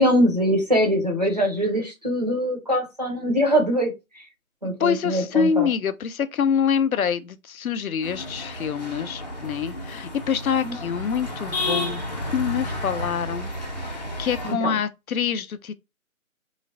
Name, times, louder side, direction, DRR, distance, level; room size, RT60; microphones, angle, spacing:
voice 1, 0.0-3.9 4.6-5.7 10.6-10.7 14.4-14.8, equal, 30° right, 0.5 m, -22 dB
voice 2, 4.8-12.0 12.3-13.5 13.8-15.7, left 7 dB, 80° left, 0.5 m, -25 dB
sound 1, 8.0-14.5, left 1 dB, 30° left, 0.7 m, -32 dB
3.0 x 2.0 x 2.5 m
figure-of-eight pair, 160°, 42 cm